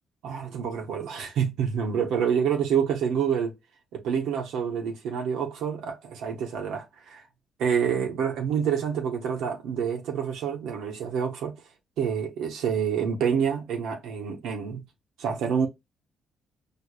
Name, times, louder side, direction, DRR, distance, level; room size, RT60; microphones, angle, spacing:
voice 1, 0.2-3.5 3.9-7.2 7.6-11.6 12.0-14.8 15.2-15.7, right 7 dB, 85° right, 0.7 m, -27 dB
4.7 x 2.5 x 2.3 m
cardioid pair, 90°, 0 cm